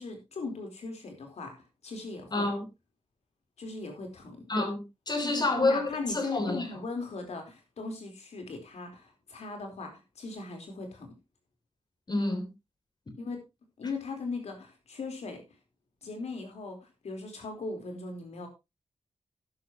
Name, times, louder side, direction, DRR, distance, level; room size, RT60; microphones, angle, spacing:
voice 1, 0.0-1.5 1.8-2.5 3.6-4.5 5.2-11.1 13.2-13.4 13.8-15.4 16.0-18.5, left 3 dB, 85° left, 4.2 m, -38 dB
voice 2, 2.3-2.6 4.5-5.9 6.1-6.6 12.1-12.5, left 2 dB, 40° left, 3.2 m, -28 dB
13.0 x 11.0 x 3.1 m
wide cardioid pair, 115°, 11 cm